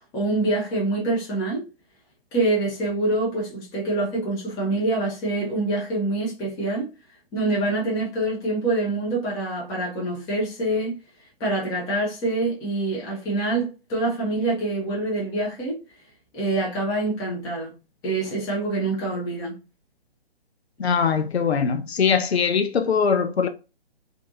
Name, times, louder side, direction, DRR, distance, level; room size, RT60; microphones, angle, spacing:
voice 1, 0.1-1.6 2.3-6.9 7.3-11.0 11.4-15.8 16.3-17.7 18.0-19.6, right 2 dB, 10° left, 0.7 m, -25 dB
voice 2, 20.8-23.5, left 6 dB, 85° left, 0.5 m, -21 dB
2.5 x 2.5 x 2.6 m
figure-of-eight pair, 135°, 31 cm